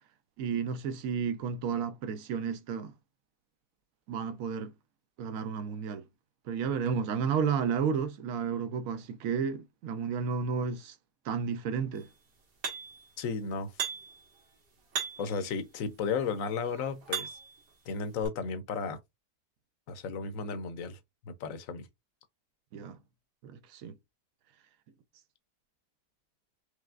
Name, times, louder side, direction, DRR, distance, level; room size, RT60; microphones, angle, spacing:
voice 1, 0.4-2.9 4.1-4.7 5.2-6.0 6.5-10.9 11.2-12.1 22.7-23.0 23.4-23.9, right 6 dB, 65° right, 0.9 m, -32 dB
sound 1, 12.6-13.1 13.8-14.2 14.9-15.4 16.2-17.6 18.2-18.3, right 6 dB, 85° right, 2.1 m, -36 dB
voice 2, 13.2-13.7 15.2-17.3 17.9-19.0 19.9-21.0 21.2-21.9, left 5 dB, 65° left, 1.0 m, -34 dB
4.9 x 3.1 x 2.4 m
omnidirectional pair, 1.8 m